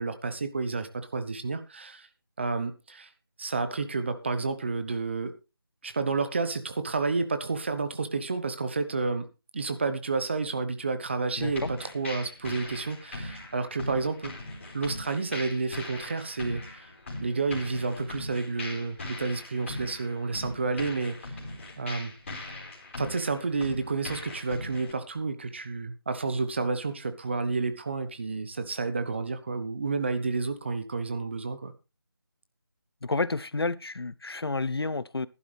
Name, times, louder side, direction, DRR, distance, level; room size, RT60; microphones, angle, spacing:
voice 1, 0.0-2.1 2.4-3.1 3.4-5.4 5.8-9.3 9.5-14.4 14.7-16.9 17.2-21.4 21.8-22.1 23.0-31.7, right 4 dB, 30° right, 1.0 m, -30 dB
voice 2, 11.4-11.7 33.0-35.3, left 3 dB, 90° left, 0.8 m, -30 dB
sound 1, 11.5-24.9, left 2 dB, 30° left, 4.1 m, -40 dB
14.5 x 11.5 x 3.4 m
figure-of-eight pair, 170°, 13 cm